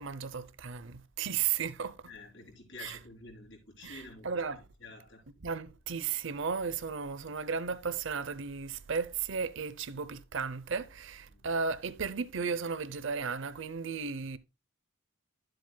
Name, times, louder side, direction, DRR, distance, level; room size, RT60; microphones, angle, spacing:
voice 1, 0.0-2.0 2.8-3.0 3.8-4.6 5.4-14.4, right 6 dB, 65° right, 0.7 m, -34 dB
voice 2, 2.1-5.2 11.3-11.5, left 3 dB, 60° left, 3.7 m, -50 dB
12.0 x 7.6 x 2.2 m
head